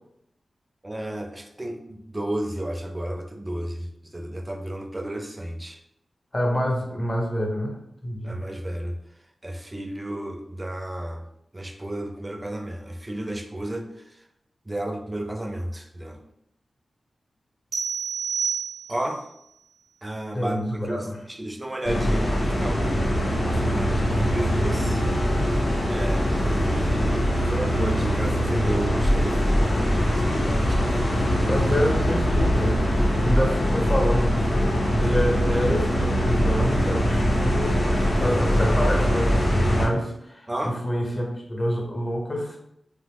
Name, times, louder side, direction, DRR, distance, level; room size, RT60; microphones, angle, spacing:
voice 1, 0.8-5.8 8.2-9.0 9.4-11.2 11.5-14.2 14.7-16.2 18.9-19.2 20.0-25.0 25.9-30.8 32.7-32.8 40.5-40.8, right 1 dB, 20° right, 5 dB, 0.4 m, -32 dB
voice 2, 6.3-7.8 8.0-8.4 20.3-21.2 31.5-37.8 38.2-42.6, equal, 30° left, 0 dB, 0.7 m, -27 dB
sound 1, 17.7-19.2, right 6 dB, 90° right, 0.6 m, -29 dB
sound 2, 21.8-39.9, equal, 65° left, 0.7 m, -22 dB
2.7 x 2.0 x 3.5 m, 0.78 s
cardioid pair, 65°, 0 cm